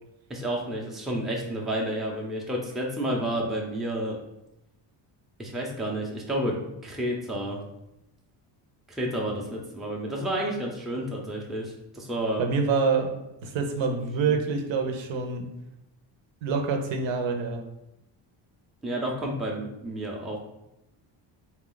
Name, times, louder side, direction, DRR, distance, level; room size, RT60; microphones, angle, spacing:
voice 1, 0.3-4.2 5.4-7.6 8.9-12.4 14.2-14.4 18.8-20.4, right 1 dB, ahead, -2 dB, 0.5 m, -30 dB
voice 2, 12.4-15.5 16.4-17.6, right 4 dB, 75° right, 5 dB, 0.8 m, -26 dB
4.0 x 2.4 x 3.8 m, 0.88 s
cardioid pair, 135°, 45 cm